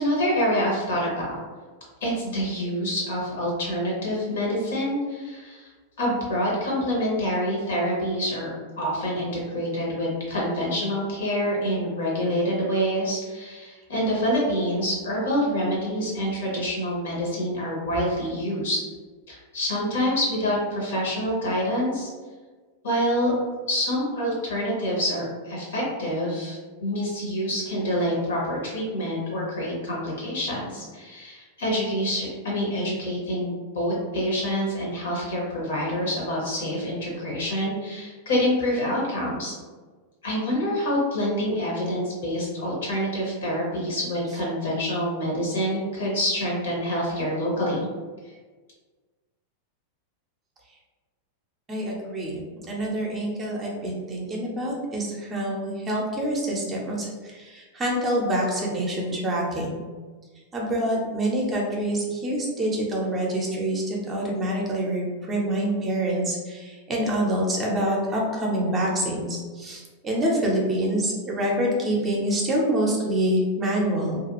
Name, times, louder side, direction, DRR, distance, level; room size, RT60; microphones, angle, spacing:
voice 1, 0.0-1.4 2.0-5.7 6.0-18.8 19.3-22.1 22.8-23.3 23.7-39.6 40.2-47.9, equal, 60° left, -4 dB, 1.0 m, -26 dB
voice 2, 51.7-52.4 52.7-59.8 60.5-74.2, right 1 dB, 20° right, -2 dB, 0.6 m, -26 dB
2.5 x 2.3 x 2.9 m, 1.4 s
figure-of-eight pair, 90°, 0 cm